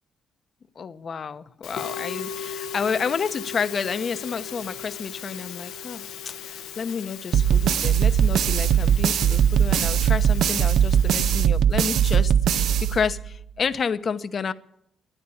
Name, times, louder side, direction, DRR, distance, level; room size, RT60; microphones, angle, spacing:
voice 1, 0.8-14.5, left 6 dB, 45° left, 12 dB, 0.9 m, -30 dB
Musical instrument, 1.6-11.1, left 7 dB, 90° left, 1.1 m, -37 dB
sound 1, 7.3-13.4, right 8 dB, 75° right, 0.6 m, -20 dB
12.5 x 9.8 x 8.5 m, 0.72 s
cardioid pair, 90°, 0 cm